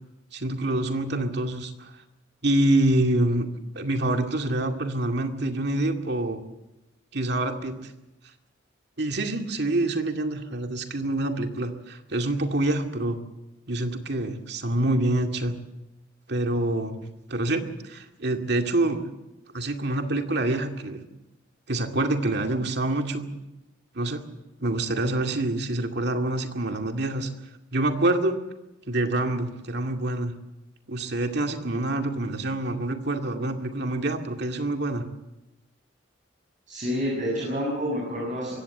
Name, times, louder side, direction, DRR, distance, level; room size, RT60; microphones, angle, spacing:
voice 1, 0.3-1.9 2.4-3.5 3.8-6.4 7.1-7.7 9.0-13.2 13.7-15.6 16.3-17.0 17.3-19.0 19.5-21.0 21.7-23.3 23.9-24.2 24.6-27.3 27.7-28.4 28.9-30.3 30.9-35.0, right 1 dB, 55° right, 4 dB, 2.3 m, -26 dB
voice 2, 36.7-38.6, equal, 40° right, -3 dB, 7.5 m, -28 dB
23.0 x 17.0 x 7.9 m, 0.96 s
head